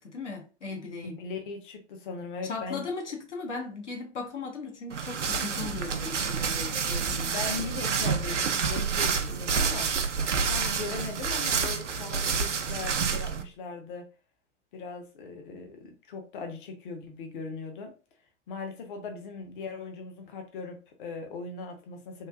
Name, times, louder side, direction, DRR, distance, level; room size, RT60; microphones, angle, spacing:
voice 1, 0.0-1.2 2.4-7.3, left 4 dB, 80° left, 0.8 m, -37 dB
voice 2, 1.0-2.9 6.9-9.9 10.4-14.0 14.7-17.9 18.5-22.3, left 4 dB, 45° left, 0.8 m, -39 dB
sound 1, 4.9-13.4, right 6 dB, 80° right, 0.5 m, -28 dB
3.1 x 2.5 x 2.3 m
figure-of-eight pair, 105°, 35 cm